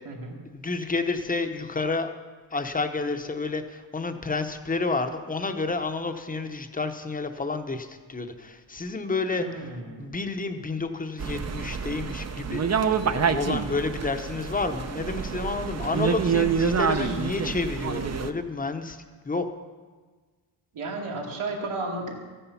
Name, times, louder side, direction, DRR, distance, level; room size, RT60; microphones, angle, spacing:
voice 1, 0.4-2.1 2.5-9.4 10.0-19.5, left 3 dB, 15° left, 7 dB, 0.8 m, -30 dB
voice 2, 9.4-10.1 15.6-15.7 16.9-17.2 20.7-22.1, right 2 dB, 80° right, -2 dB, 2.7 m, -34 dB
sound 1, 11.2-18.3, right 6 dB, 35° right, 0.6 m, -27 dB
14.0 x 10.0 x 5.7 m, 1.4 s
wide cardioid pair, 135°, 50 cm